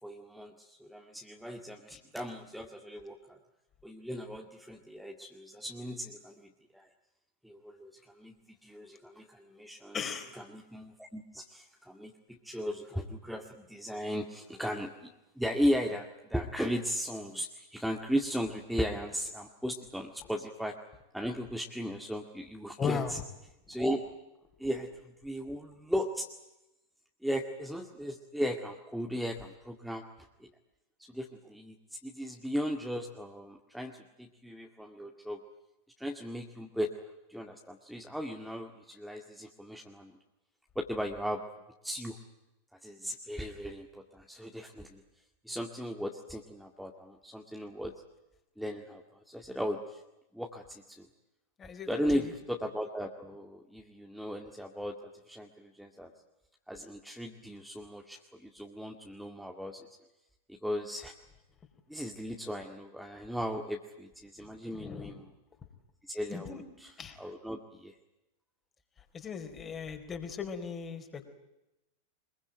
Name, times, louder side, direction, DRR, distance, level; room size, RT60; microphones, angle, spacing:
voice 1, 0.0-3.4 3.8-6.9 7.4-8.3 8.6-10.0 10.5-15.1 15.4-20.8 21.1-23.2 23.7-24.1 24.6-26.3 27.2-30.0 30.4-30.5 31.1-35.4 36.0-36.9 37.3-40.2 40.8-41.4 41.8-42.2 42.8-45.0 45.4-47.9 48.6-50.0 50.3-51.1 51.9-56.1 56.7-59.9 60.5-61.1 61.9-65.3 66.1-66.9 67.2-67.9, equal, ahead, 2 dB, 2.1 m, -36 dB
voice 2, 9.9-10.3 22.8-23.2 51.6-52.2 64.4-65.2 66.3-66.6 67.0-67.2 69.1-71.3, left 6 dB, 20° left, 7 dB, 4.1 m, -37 dB
24.5 x 22.5 x 9.1 m, 0.93 s
figure-of-eight pair, 90°, 0 cm